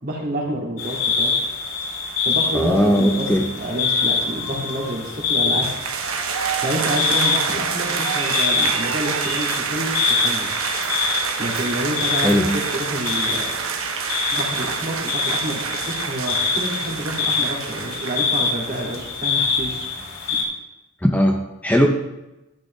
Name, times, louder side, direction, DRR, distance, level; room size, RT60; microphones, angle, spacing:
voice 1, 0.0-1.3 2.2-5.7 6.3-10.5 11.4-13.6 14.3-19.9 20.3-20.4, right 1 dB, 45° right, 0 dB, 2.3 m, -28 dB
sound 1, 0.8-20.4, left 5 dB, 80° left, 2.8 m, -25 dB
voice 2, 2.5-3.4 12.2-12.5 21.0-21.4 21.6-21.9, equal, 5° left, 2 dB, 0.6 m, -17 dB
sound 2, 5.6-18.8, right 6 dB, 85° right, 1.1 m, -27 dB
11.5 x 11.0 x 3.2 m, 0.99 s
head